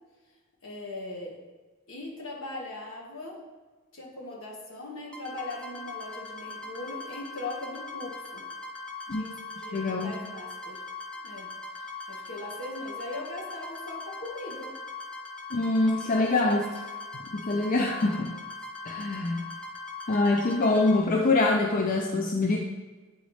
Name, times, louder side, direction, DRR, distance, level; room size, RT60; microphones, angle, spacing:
voice 1, 0.6-1.4 1.9-3.4 3.9-8.4 9.1-10.8 11.2-11.5 11.7-14.7 16.0-16.6 17.4-17.7, left 2 dB, 70° left, -1 dB, 1.4 m, -40 dB
sound 1, 5.1-21.0, left 3 dB, 5° left, 0.9 m, -40 dB
voice 2, 9.7-10.1 15.5-16.6 17.3-18.3 18.9-19.4 20.1-22.6, left 2 dB, 40° left, 1 dB, 0.5 m, -24 dB
7.9 x 4.0 x 3.2 m, 1.3 s
head